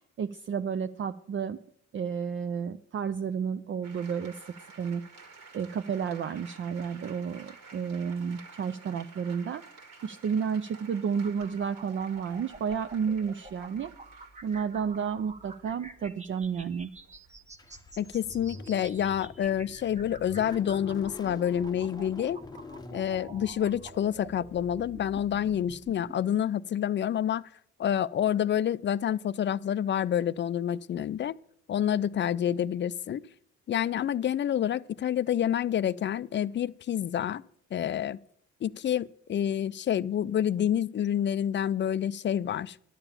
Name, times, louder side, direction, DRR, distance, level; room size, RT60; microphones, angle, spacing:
voice 1, 0.2-1.6 1.9-4.4 4.8-5.0 5.5-9.6 10.0-13.9 14.4-16.9, right 6 dB, 40° right, 0.5 m, -31 dB
sound 1, 3.8-18.3, right 4 dB, 60° right, 2.0 m, -52 dB
sound 2, 11.2-26.2, right 2 dB, 25° right, 1.0 m, -49 dB
Car / Engine starting, 17.6-26.3, left 3 dB, 15° left, 0.7 m, -46 dB
voice 2, 18.0-22.4 22.9-27.4 27.8-31.3 31.7-33.2 33.7-37.4 37.7-38.2 38.6-42.8, left 10 dB, 40° left, 0.4 m, -28 dB
11.0 x 6.9 x 7.2 m
cardioid pair, 90°, 30 cm